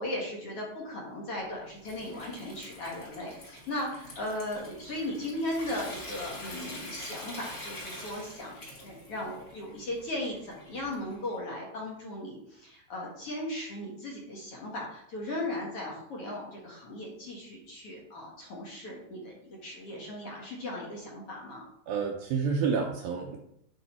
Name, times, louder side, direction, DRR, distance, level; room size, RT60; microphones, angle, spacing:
voice 1, 0.0-21.7, left 1 dB, 55° left, -2 dB, 1.8 m, -37 dB
Water tap faucet / Sink (filling or washing) / Trickle dribble, 1.4-11.3, left 1 dB, 30° left, 2.1 m, -45 dB
voice 2, 21.9-23.4, right 5 dB, 75° right, 1 dB, 2.2 m, -29 dB
9.5 x 5.4 x 4.4 m, 0.76 s
omnidirectional pair, 4.9 m